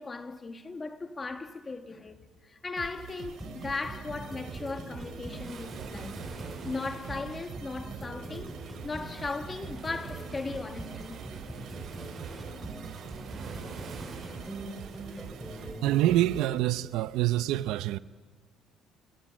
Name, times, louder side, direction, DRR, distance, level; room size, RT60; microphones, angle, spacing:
voice 1, 0.0-6.2 6.6-11.2, left 3 dB, 20° left, 1.7 m, -37 dB
sound 1, 2.8-16.5, right 9 dB, 60° right, 3.1 m, -46 dB
sound 2, 3.4-16.3, right 1 dB, 5° right, 4.9 m, -42 dB
Waves surf, 5.3-15.6, right 5 dB, 45° right, 6.6 m, -47 dB
voice 2, 15.8-18.0, right 14 dB, 75° right, 0.8 m, -26 dB
29.5 x 23.5 x 7.7 m
cardioid pair, 140°, 0 cm